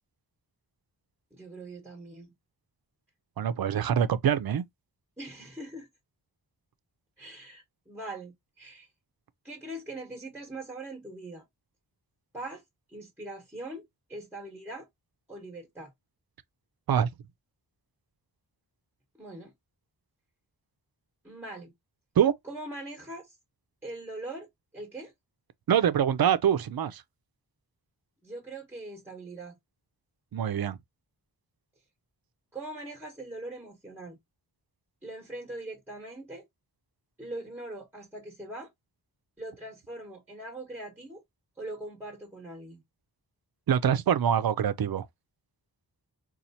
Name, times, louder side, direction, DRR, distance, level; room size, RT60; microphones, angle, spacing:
voice 1, 1.3-2.3 5.2-5.9 7.2-8.9 9.4-11.4 12.3-12.6 12.9-14.9 15.3-15.9 19.2-19.5 21.2-21.7 22.4-23.3 23.8-24.5 24.7-25.1 28.2-29.6 32.5-34.2 35.0-36.4 37.2-38.7 39.4-41.2 41.6-42.8, right 2 dB, 5° right, 0.9 m, -41 dB
voice 2, 3.4-4.6 16.9-17.1 22.2-22.3 25.7-27.0 30.3-30.8 43.7-45.1, right 9 dB, 60° right, 0.5 m, -24 dB
4.2 x 2.4 x 2.6 m
wide cardioid pair, 105°, 42 cm